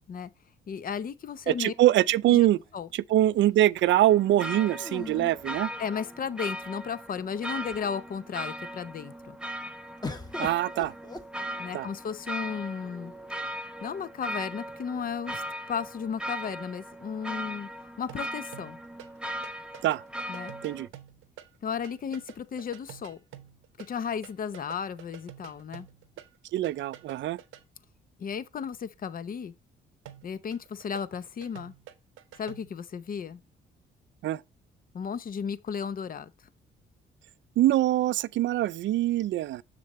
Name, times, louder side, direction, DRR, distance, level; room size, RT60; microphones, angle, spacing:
voice 1, 0.7-1.7 2.3-2.5 2.7-2.9 5.8-9.4 11.6-13.1 13.8-15.4 15.7-17.7 18.0-18.8 20.3-20.5 21.6-23.2 23.8-25.9 28.2-29.5 30.2-31.7 32.4-33.4 34.9-36.3, left 7 dB, 45° left, 0.8 m, -34 dB
voice 2, 1.5-2.6 2.9-5.7 10.4-10.9 11.7-11.9 19.8-20.0 20.6-20.9 26.5-27.4 34.2-34.4 37.6-39.6, right 14 dB, 70° right, 0.4 m, -24 dB
sound 1, 1.7-2.8 4.8-6.3 7.1-7.2 7.5-8.1 10.0-11.9 12.8-13.5, left 3 dB, 20° left, 1.3 m, -42 dB
sound 2, 3.9-20.9, equal, 5° right, 0.7 m, -38 dB
sound 3, 18.1-19.2 19.4-24.0 24.2-27.6 30.0-32.8, right 12 dB, 90° right, 1.0 m, -48 dB
6.8 x 6.8 x 3.1 m
cardioid pair, 90°, 20 cm